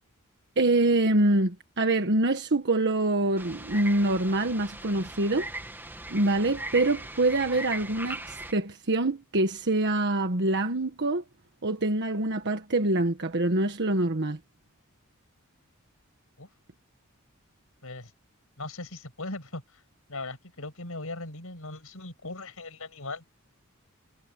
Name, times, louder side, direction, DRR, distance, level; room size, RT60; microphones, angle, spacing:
voice 1, 0.6-5.5 6.1-11.2 11.6-14.4, right 2 dB, 55° right, 1.4 m, -25 dB
sound 1, 3.4-8.5, right 2 dB, 10° right, 2.5 m, -39 dB
voice 2, 18.6-19.8 20.1-23.2, left 2 dB, 75° left, 7.1 m, -39 dB
head